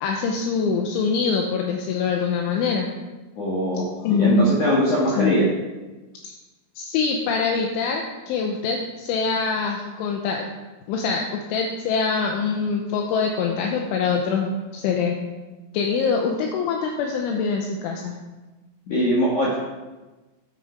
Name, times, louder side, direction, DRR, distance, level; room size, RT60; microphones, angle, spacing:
voice 1, 0.0-2.9 4.0-4.5 5.2-5.3 6.8-10.5 10.9-15.2 15.7-18.1, left 5 dB, 80° left, 1 dB, 3.1 m, -24 dB
voice 2, 3.4-3.8 4.2-5.5 18.9-19.5, equal, 55° left, -6 dB, 2.3 m, -21 dB
9.6 x 8.6 x 5.1 m, 1.2 s
omnidirectional pair, 6.0 m